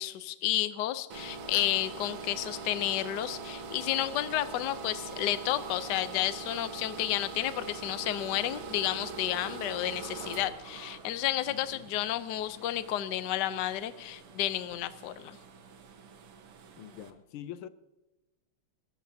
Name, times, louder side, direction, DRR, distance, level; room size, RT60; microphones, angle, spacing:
voice 1, 0.0-15.4, left 13 dB, 65° left, 1.2 m, -31 dB
sound 1, 1.1-17.1, right 4 dB, 90° right, 2.2 m, -43 dB
voice 2, 11.5-11.9 16.8-17.7, left 11 dB, 80° left, 1.6 m, -45 dB
25.5 x 13.5 x 2.8 m
omnidirectional pair, 2.4 m